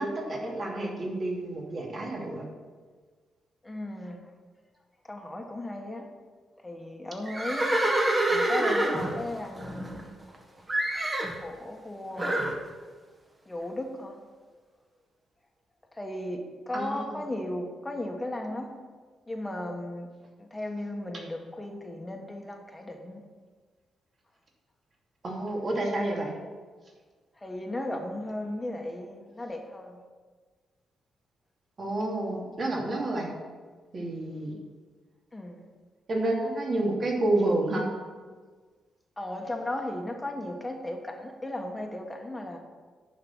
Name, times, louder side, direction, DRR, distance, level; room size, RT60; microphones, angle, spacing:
voice 1, 0.0-2.4 16.7-17.2 25.2-26.3 31.8-33.3 33.9-34.5 36.1-37.8, right 2 dB, 45° right, -1 dB, 2.7 m, -29 dB
voice 2, 3.6-4.2 5.1-6.1 6.6-7.7 8.3-9.9 11.4-12.3 13.5-14.1 16.0-18.7 19.3-20.1 20.4-23.2 27.4-30.0 35.3-35.6 39.2-42.6, left 1 dB, 15° left, 2 dB, 1.4 m, -35 dB
Livestock farm animals working animals, 7.3-10.4 10.7-11.4 12.2-12.6, right 1 dB, 25° right, 1.5 m, -27 dB
10.5 x 5.8 x 7.5 m, 1.5 s
cardioid pair, 100°, 0 cm